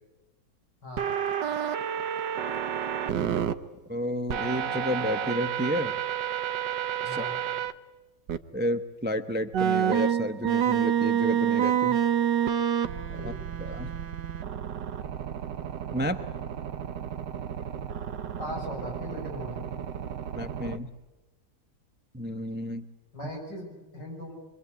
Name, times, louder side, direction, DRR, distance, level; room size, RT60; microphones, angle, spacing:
voice 1, 0.8-1.1 7.1-7.5 13.1-13.4 18.4-19.6 23.1-24.4, left 1 dB, 75° left, 0 dB, 8.3 m, -39 dB
sound 1, 1.0-3.5 4.3-7.7 8.3-8.4 9.5-20.8, right 9 dB, 80° right, 1.7 m, -29 dB
voice 2, 3.9-6.0 7.0-7.2 8.5-12.0 13.1-13.3 13.6-13.9 15.9-16.2 20.3-20.9 22.1-22.8, equal, 10° right, 9 dB, 0.6 m, -31 dB
25.0 x 24.5 x 8.3 m, 1.1 s
omnidirectional pair, 1.9 m